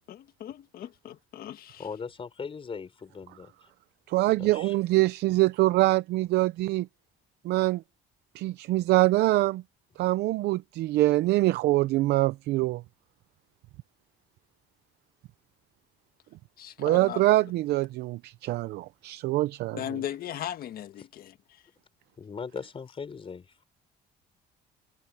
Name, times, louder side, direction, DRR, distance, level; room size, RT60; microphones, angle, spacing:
voice 1, 0.1-1.9 16.6-17.2 19.7-21.6, left 10 dB, 60° left, 1.7 m, -38 dB
voice 2, 1.8-3.7 4.3-4.7 22.2-23.6, left 5 dB, 30° left, 6.2 m, -39 dB
voice 3, 4.1-6.9 7.4-7.8 8.3-9.6 10.0-12.8 16.8-19.8, right 18 dB, 80° right, 0.6 m, -24 dB
cardioid pair, 110°, 17 cm